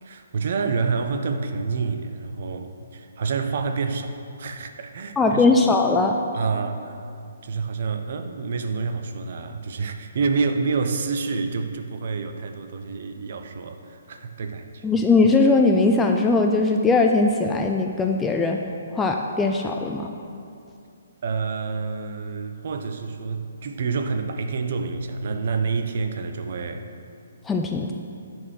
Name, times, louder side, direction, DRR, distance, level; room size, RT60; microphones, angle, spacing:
voice 1, 0.0-5.4 6.3-7.0 7.4-14.8 21.2-26.9, right 4 dB, 50° right, 7 dB, 0.7 m, -28 dB
voice 2, 5.2-6.1 14.8-18.6 18.9-20.1 27.4-27.9, left 3 dB, 10° left, 2 dB, 0.4 m, -20 dB
10.5 x 4.5 x 6.6 m, 2.5 s
figure-of-eight pair, 130°, 0 cm